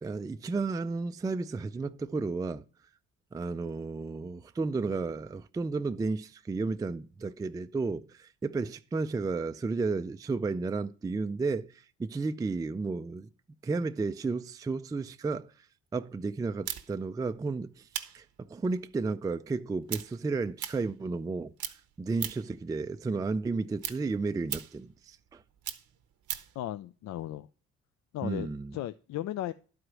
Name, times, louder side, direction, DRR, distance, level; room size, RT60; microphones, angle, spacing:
voice 1, 0.0-2.6 3.3-13.3 13.6-15.5 15.9-17.9 18.1-21.5 22.0-25.4 28.2-28.7, right 4 dB, 15° right, 0.3 m, -33 dB
sound 1, 16.6-21.3 21.6-22.6 23.0-26.6, right 11 dB, 75° right, 0.9 m, -39 dB
voice 2, 26.6-27.5 28.1-29.5, left 13 dB, 65° left, 0.4 m, -36 dB
11.5 x 4.8 x 6.1 m
cardioid pair, 90°, 30 cm